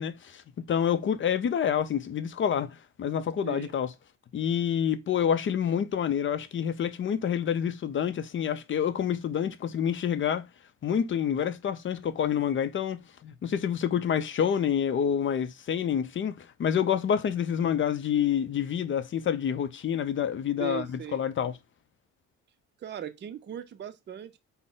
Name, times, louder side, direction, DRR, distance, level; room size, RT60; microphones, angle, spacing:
voice 1, 0.0-3.9 4.3-10.5 10.8-21.5, left 8 dB, 40° left, 0.5 m, -28 dB
voice 2, 20.6-21.2 22.8-24.4, right 9 dB, 35° right, 0.5 m, -38 dB
3.8 x 2.0 x 3.8 m
cardioid pair, 90°, 30 cm